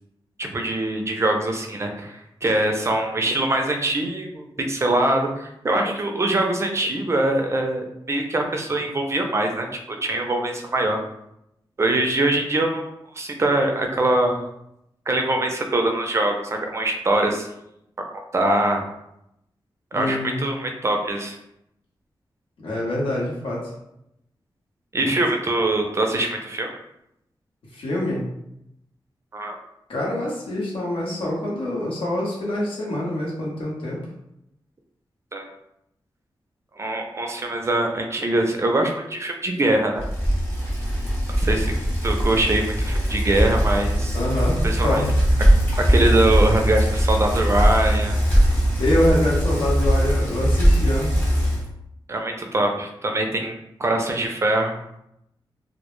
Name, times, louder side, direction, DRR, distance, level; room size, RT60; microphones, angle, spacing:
voice 1, 0.4-11.0 11.8-14.4 15.1-17.5 18.3-18.8 19.9-21.4 24.9-26.7 29.3-29.6 35.3-35.5 36.8-40.1 41.4-41.7 42.0-44.2 44.6-45.1 45.9-48.2 52.1-53.5 53.8-54.7, right 1 dB, 30° right, 3 dB, 0.3 m, -23 dB
voice 2, 19.9-20.4 22.6-23.7 25.0-25.1 27.7-28.2 29.9-34.0 44.1-45.1 48.8-51.1, left 1 dB, 85° left, -4 dB, 0.8 m, -25 dB
Bicycle, 40.0-51.7, equal, 25° left, 0.9 m, -20 dB
2.0 x 2.0 x 3.0 m, 0.81 s
wide cardioid pair, 115°, 9 cm